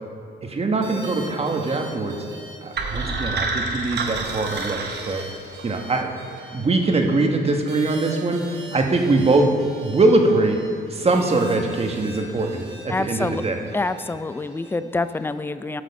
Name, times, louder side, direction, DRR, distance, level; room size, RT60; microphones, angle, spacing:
voice 1, 0.4-2.2 2.6-4.8 5.0-5.2 5.6-6.1 6.5-9.5 9.8-10.6 10.9-13.6, right 2 dB, 30° right, 3 dB, 1.3 m, -22 dB
sound 1, 0.8-15.3, right 1 dB, 80° right, 3.0 m, -41 dB
sound 2, 2.8-5.8, right 3 dB, 55° right, 1.1 m, -28 dB
voice 2, 12.9-13.4 13.7-15.8, left 3 dB, 10° left, 12 dB, 0.4 m, -26 dB
13.0 x 6.3 x 5.3 m, 2.4 s
cardioid pair, 90°, 20 cm